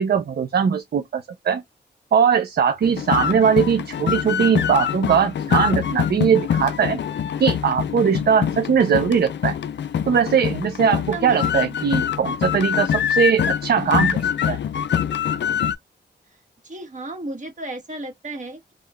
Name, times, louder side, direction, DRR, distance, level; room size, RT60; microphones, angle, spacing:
voice 1, 0.0-1.6 2.1-7.0 7.4-9.6 10.1-14.6, right 7 dB, 60° right, 0.5 m, -20 dB
sound 1, 2.8-15.7, left 8 dB, 75° left, 0.5 m, -24 dB
voice 2, 11.1-11.8 16.6-18.7, right 2 dB, 40° right, 1.4 m, -34 dB
3.6 x 2.3 x 2.2 m
cardioid pair, 70°, 19 cm